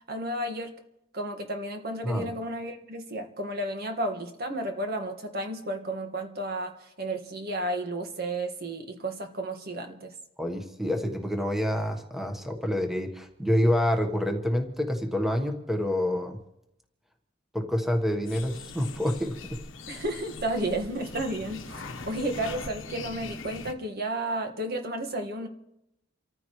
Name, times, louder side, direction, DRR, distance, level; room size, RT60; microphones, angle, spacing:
voice 1, 0.1-0.8 1.1-10.1 19.9-25.5, right 1 dB, 50° right, 4 dB, 1.7 m, -32 dB
voice 2, 10.4-16.4 17.5-19.3, equal, ahead, 3 dB, 1.3 m, -27 dB
sound 1, 18.2-23.7, left 4 dB, 75° left, 1.2 m, -41 dB
28.5 x 14.5 x 3.2 m, 0.82 s
head